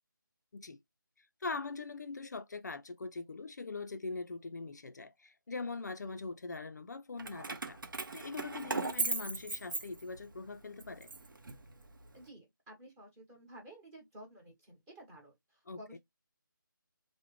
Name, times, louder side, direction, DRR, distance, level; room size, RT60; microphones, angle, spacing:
voice 1, 1.2-7.8 8.1-11.1 15.7-16.0, left 3 dB, 55° left, 0.4 m, -42 dB
Keys jangling, 7.2-10.4 10.8-12.1, right 3 dB, 70° right, 0.7 m, -38 dB
voice 2, 12.1-16.0, right 1 dB, 15° right, 1.0 m, -53 dB
3.5 x 2.0 x 3.0 m
figure-of-eight pair, 160°, 11 cm